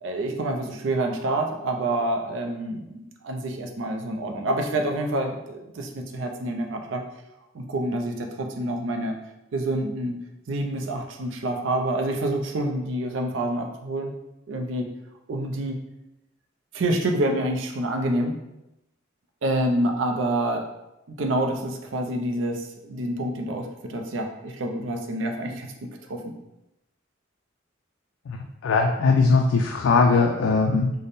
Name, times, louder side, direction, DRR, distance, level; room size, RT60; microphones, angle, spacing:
voice 1, 0.0-7.0 7.5-9.2 9.5-10.2 10.5-14.1 14.5-14.9 15.3-15.8 16.7-18.4 19.4-20.7 21.1-26.3, right 1 dB, 75° right, 3 dB, 0.5 m, -27 dB
voice 2, 28.6-30.9, left 4 dB, 80° left, 2 dB, 0.3 m, -20 dB
3.4 x 2.1 x 4.0 m, 0.91 s
head